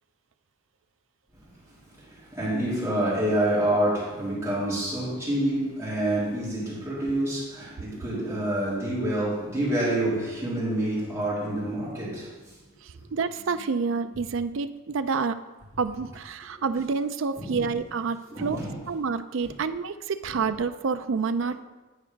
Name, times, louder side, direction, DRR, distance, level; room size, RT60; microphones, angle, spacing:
voice 1, 1.9-12.3 16.5-16.6 17.3-17.7 18.3-18.8 20.3-20.5 21.4-21.5, right 1 dB, 10° right, -9 dB, 3.1 m, -27 dB
voice 2, 13.1-15.4 15.8-18.6 18.9-21.6, right 5 dB, 65° right, 11 dB, 0.4 m, -28 dB
9.8 x 4.9 x 5.2 m, 1.1 s
head